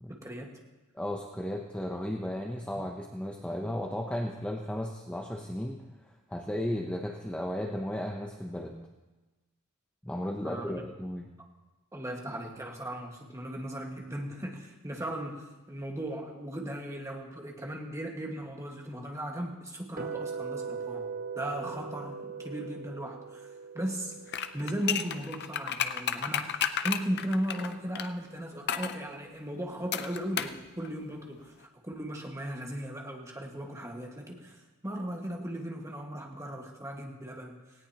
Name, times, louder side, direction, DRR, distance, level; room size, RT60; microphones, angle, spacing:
voice 1, 0.1-0.5 10.4-10.8 11.9-21.1 21.3-37.9, right 1 dB, 15° right, 0 dB, 1.6 m, -37 dB
voice 2, 0.9-5.8 6.3-8.8 10.0-11.3, left 1 dB, 5° left, 1 dB, 0.7 m, -34 dB
sound 1, 20.0-26.0, right 5 dB, 40° right, 1.1 m, -40 dB
sound 2, 24.3-28.1 28.7-29.0 29.9-30.6 30.8-30.9, left 9 dB, 50° left, 0.6 m, -32 dB
18.5 x 17.0 x 2.9 m, 1.2 s
head